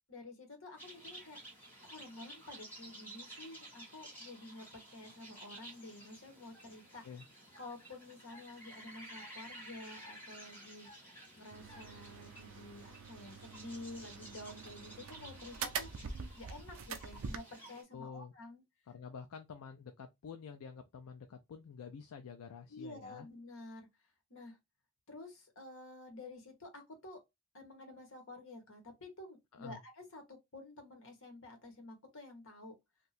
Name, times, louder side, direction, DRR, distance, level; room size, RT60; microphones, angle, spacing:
voice 1, 0.1-1.4 1.8-7.0 7.6-10.9 11.4-15.9 16.4-18.6 22.7-23.9 24.3-24.6 25.1-27.2 27.5-32.7, left 2 dB, 60° left, 1.2 m, -50 dB
sound 1, 0.8-17.8, right 1 dB, 10° left, 1.3 m, -53 dB
sound 2, 11.5-17.4, right 5 dB, 60° right, 0.5 m, -45 dB
voice 2, 17.9-18.3 18.9-23.3 29.6-29.8, left 6 dB, 75° left, 0.4 m, -49 dB
2.7 x 2.3 x 4.1 m
head